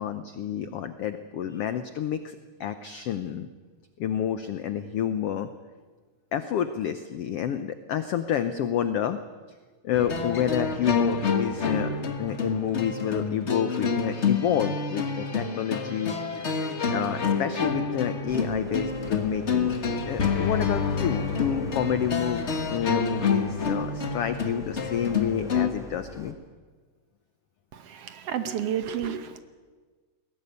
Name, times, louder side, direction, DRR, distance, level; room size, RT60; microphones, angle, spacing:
voice 1, 0.0-3.5 4.0-5.5 6.3-9.2 9.8-11.9 12.2-16.2 16.9-19.7 20.1-26.3, left 9 dB, 85° left, 11 dB, 1.3 m, -29 dB
sound 1, 9.9-25.7, left 5 dB, 65° left, 0.6 m, -28 dB
sound 2, 18.3-26.3, left 1 dB, ahead, 0.9 m, -45 dB
voice 2, 27.7-29.4, right 9 dB, 65° right, 10 dB, 1.6 m, -31 dB
21.5 x 17.5 x 9.4 m, 1.5 s
omnidirectional pair, 3.8 m